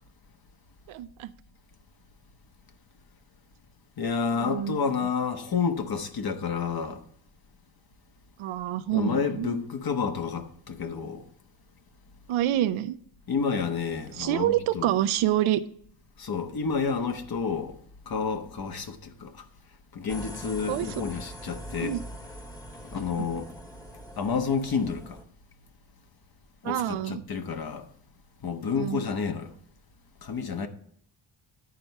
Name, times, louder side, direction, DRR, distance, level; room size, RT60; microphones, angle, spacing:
voice 1, 0.9-1.3 4.3-4.8 8.4-9.5 12.3-13.0 14.1-15.6 20.7-20.9 21.8-22.0 23.2-23.3 26.6-27.2 28.8-29.0, right 13 dB, 90° right, 0.6 m, -27 dB
voice 2, 4.0-7.0 8.9-11.3 13.3-14.9 16.2-17.8 18.1-19.4 19.9-22.0 22.8-23.5 24.2-25.2 26.6-27.9 28.4-29.5 30.2-30.7, left 5 dB, 50° left, 1.2 m, -30 dB
sound 1, 20.1-25.2, equal, 10° left, 1.2 m, -42 dB
10.5 x 4.5 x 5.4 m
cardioid pair, 85°, 47 cm